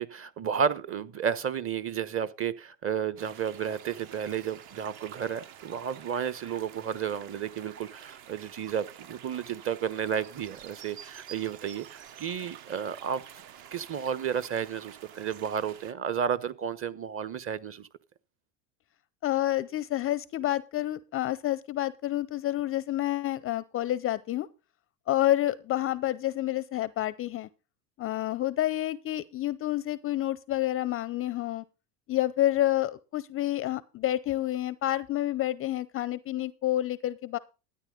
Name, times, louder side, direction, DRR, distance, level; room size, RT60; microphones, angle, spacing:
voice 1, 0.0-13.2 13.7-17.9, right 8 dB, 30° right, 1.0 m, -32 dB
sound 1, 3.2-15.9, right 10 dB, 50° right, 1.2 m, -49 dB
voice 2, 19.2-24.5 25.1-27.5 28.0-31.6 32.1-37.4, left 14 dB, 30° left, 0.5 m, -29 dB
13.0 x 9.4 x 3.7 m
hypercardioid pair, 100°, 47 cm